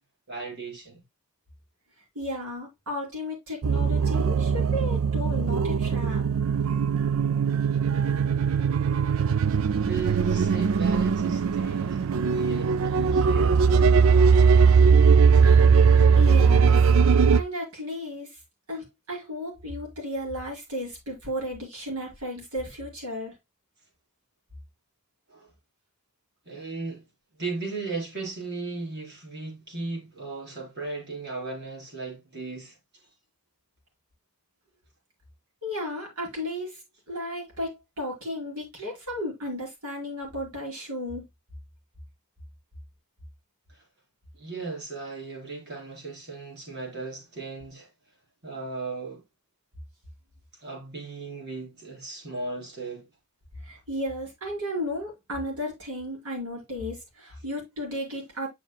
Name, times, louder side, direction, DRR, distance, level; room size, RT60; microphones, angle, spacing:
voice 1, 0.3-1.0 8.5-8.7 9.6-13.6 25.3-25.5 26.5-27.1 27.4-32.8 43.7-43.8 44.3-47.9 48.4-49.2 50.6-53.1, right 3 dB, 50° right, 4.0 m, -36 dB
voice 2, 2.1-6.2 16.1-18.4 18.7-23.3 35.6-36.8 37.1-41.2 53.6-58.5, left 1 dB, 90° right, 5.1 m, -34 dB
sound 1, 3.6-17.4, right 6 dB, 70° right, 0.4 m, -20 dB
9.2 x 6.1 x 2.3 m
head